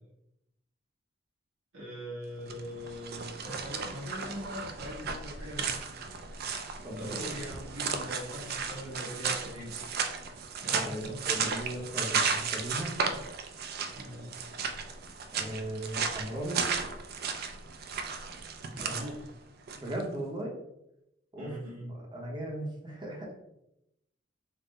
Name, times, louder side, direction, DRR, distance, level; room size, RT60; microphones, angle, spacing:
voice 1, 1.7-5.8 7.0-9.7 10.6-11.3 13.9-14.3 18.7-19.3 21.4-21.9, equal, 80° right, -7 dB, 1.3 m, -41 dB
sound 1, 2.4-20.0, right 5 dB, 55° right, 0.4 m, -34 dB
voice 2, 6.8-7.6 10.6-12.9 15.3-16.6 18.8-19.1 19.8-20.5 21.3-21.6 22.1-23.3, right 1 dB, 25° right, -1 dB, 0.8 m, -37 dB
3.6 x 2.1 x 3.9 m, 0.83 s
head